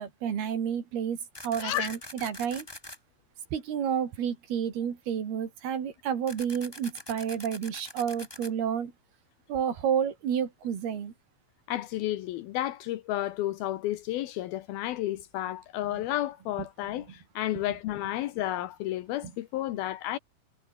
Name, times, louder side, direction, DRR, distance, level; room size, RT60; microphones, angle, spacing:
voice 1, 0.0-2.7 3.5-8.9 9.5-11.1, right 8 dB, 80° right, 5.0 m, -30 dB
sound 1, 1.3-3.0 6.3-8.5, left 1 dB, 10° left, 1.9 m, -44 dB
voice 2, 1.6-2.0 11.7-20.2, left 14 dB, 75° left, 2.8 m, -32 dB
omnidirectional pair, 4.4 m